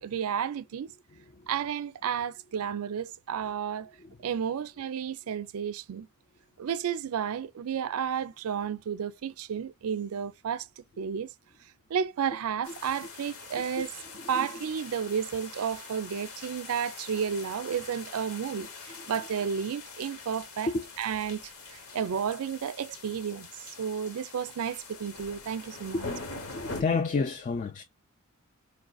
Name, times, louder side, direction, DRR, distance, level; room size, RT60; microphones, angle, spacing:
voice 1, 0.0-0.9 1.5-3.9 4.2-6.1 6.6-11.3 11.9-13.9 14.3-20.7 21.0-23.5 23.8-26.1, right 7 dB, 70° right, 0.4 m, -32 dB
voice 2, 1.1-1.5 4.0-4.2 13.8-13.9 14.2-14.6 19.0-19.1 20.7-20.9 25.9-26.1 26.5-27.8, left 4 dB, 35° left, 0.3 m, -31 dB
sound 1, 12.6-26.8, left 4 dB, 70° left, 1.1 m, -44 dB
4.4 x 2.5 x 2.3 m
head